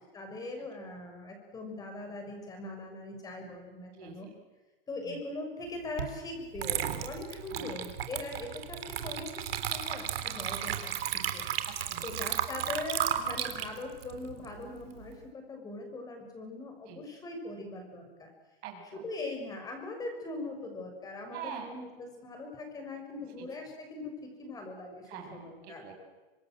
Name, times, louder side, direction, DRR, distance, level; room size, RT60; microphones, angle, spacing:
voice 1, 0.1-4.3 4.9-11.5 12.0-18.3 18.9-25.8, left 2 dB, 10° left, 4 dB, 6.4 m, -41 dB
voice 2, 3.9-4.3 5.1-5.2 7.5-7.7 11.6-12.1 16.9-17.0 18.6-19.0 21.3-21.7 23.4-23.5 25.1-25.9, right 8 dB, 30° right, 2 dB, 7.4 m, -44 dB
Water / Liquid, 6.0-6.1 6.6-15.1, right 10 dB, 75° right, 3.7 m, -34 dB
28.5 x 26.0 x 7.8 m, 1.2 s
supercardioid pair, 165°, 30 cm